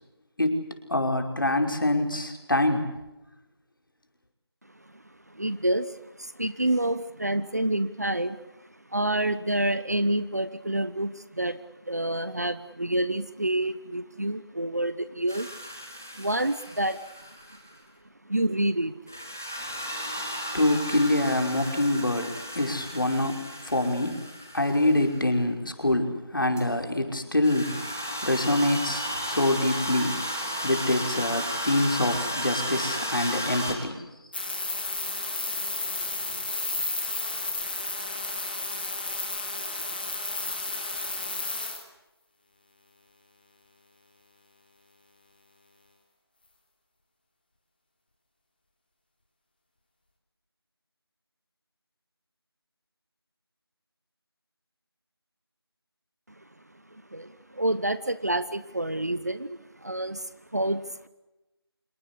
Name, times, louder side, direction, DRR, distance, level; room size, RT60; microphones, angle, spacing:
voice 1, 0.9-2.9 20.5-24.2 24.5-27.8 28.2-30.2 30.6-34.0, left 1 dB, 55° left, 5 dB, 5.3 m, -25 dB
voice 2, 4.7-11.6 11.9-15.6 16.1-17.0 18.2-19.1 56.4-56.5 56.7-61.1, right 1 dB, 40° right, 14 dB, 1.1 m, -28 dB
sound 1, 15.3-17.8 19.1-25.2 26.6-26.7 27.4-33.7, equal, 5° left, 1.0 m, -34 dB
sound 2, 34.3-41.8, left 2 dB, 20° left, 3.3 m, -32 dB
27.0 x 23.0 x 8.4 m, 0.98 s
figure-of-eight pair, 180°, 14 cm